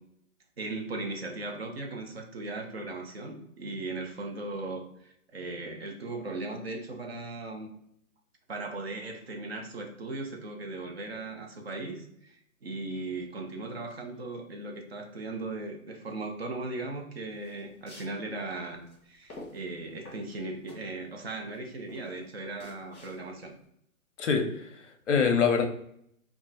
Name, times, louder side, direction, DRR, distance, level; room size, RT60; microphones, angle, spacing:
voice 1, 0.6-7.7 8.5-18.8 19.1-23.5, right 2 dB, 45° right, 3 dB, 0.5 m, -38 dB
sound 1, 17.3-23.6, left 1 dB, 10° left, 0.7 m, -50 dB
voice 2, 24.2-25.7, left 6 dB, 60° left, 6 dB, 0.6 m, -25 dB
2.4 x 2.0 x 3.8 m, 0.72 s
hypercardioid pair, 165°, 43 cm